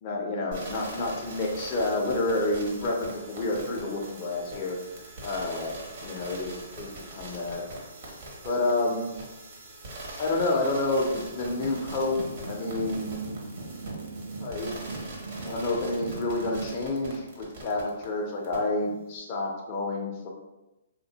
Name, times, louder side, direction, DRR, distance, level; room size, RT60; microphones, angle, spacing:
voice 1, 0.0-4.8 5.2-7.6 8.4-9.1 10.2-12.2 12.5-13.2 14.4-14.8 15.4-20.3, left 2 dB, 35° left, -1 dB, 0.5 m, -29 dB
sound 1, 0.5-18.0 18.4-18.6, right 2 dB, 50° right, 0.8 m, -43 dB
sound 2, 11.6-16.8, right 3 dB, 80° right, 0.5 m, -39 dB
2.5 x 2.1 x 2.7 m, 0.99 s
hypercardioid pair, 140°, 0 cm